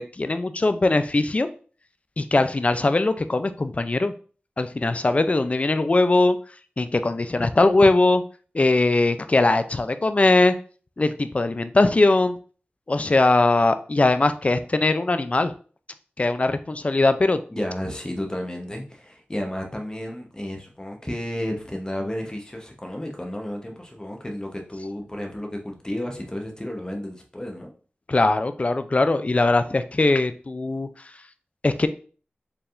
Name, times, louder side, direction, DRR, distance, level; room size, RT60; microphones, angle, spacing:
voice 1, 0.0-1.5 2.2-4.1 4.6-6.4 6.8-8.2 8.5-10.5 11.0-12.4 12.9-15.5 16.2-17.4 28.1-30.9 31.6-31.9, left 2 dB, 35° left, 10 dB, 0.4 m, -20 dB
voice 2, 17.5-27.7, left 1 dB, 20° left, 2 dB, 0.9 m, -32 dB
4.6 x 3.4 x 2.5 m, 0.41 s
wide cardioid pair, 65°, 4 cm